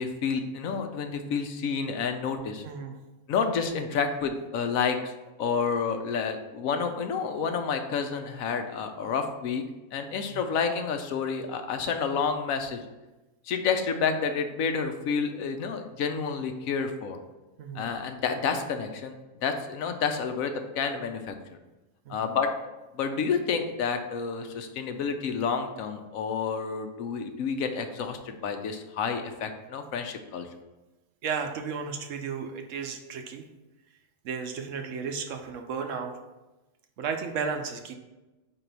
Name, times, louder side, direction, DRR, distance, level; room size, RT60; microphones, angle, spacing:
voice 1, 0.0-2.6 3.3-5.1 5.4-9.6 9.9-12.8 13.4-17.2 17.7-19.1 19.4-21.4 22.1-22.5 22.9-30.5, left 6 dB, 80° left, 6 dB, 1.0 m, -29 dB
voice 2, 2.6-3.0 10.3-10.4 17.6-17.9 22.1-22.3 31.2-33.5 34.2-36.1 37.0-37.9, right 6 dB, 70° right, 5 dB, 1.0 m, -34 dB
4.6 x 4.0 x 5.2 m, 1.1 s
omnidirectional pair, 1.4 m